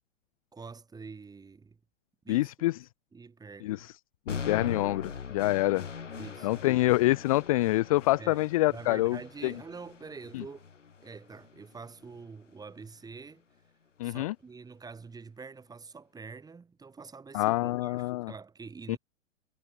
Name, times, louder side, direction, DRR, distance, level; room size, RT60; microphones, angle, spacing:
voice 1, 0.5-1.8 2.2-2.7 3.1-3.8 6.2-6.6 8.2-10.7 11.0-13.4 14.0-19.0, right 4 dB, 10° right, 6.3 m, -46 dB
voice 2, 2.3-2.7 3.6-3.9 4.3-5.9 6.4-9.5 10.3-10.4 14.0-14.3 17.3-18.3 18.9-19.0, left 18 dB, 30° left, 0.5 m, -26 dB
sound 1, 4.3-12.3, left 6 dB, 70° left, 4.9 m, -41 dB
figure-of-eight pair, 110°, 38 cm